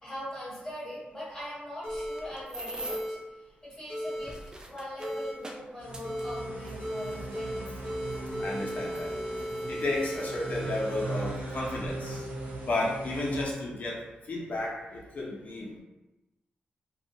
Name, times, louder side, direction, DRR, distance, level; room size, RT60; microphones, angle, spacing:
voice 1, 0.0-3.2 3.6-7.9, left 1 dB, 15° left, -11 dB, 1.5 m, -41 dB
sound 1, 1.8-2.2 2.8-3.1 3.9-4.2 5.0-5.3 6.0-6.4 6.8-7.6 7.8-11.6, equal, 80° left, 0.9 m, -36 dB
sound 2, 1.9-3.2 4.0-7.3 8.1-8.2 8.8-10.3 11.1-11.2 11.6-11.9, right 2 dB, 20° right, 0.3 m, -44 dB
sound 3, 5.8-13.4, right 2 dB, 65° right, 0.6 m, -39 dB
voice 2, 8.4-9.1 9.7-12.3 12.7-15.8, left 2 dB, 55° left, -4 dB, 0.7 m, -33 dB
2.4 x 2.2 x 2.7 m, 1.1 s
wide cardioid pair, 110°, 3 cm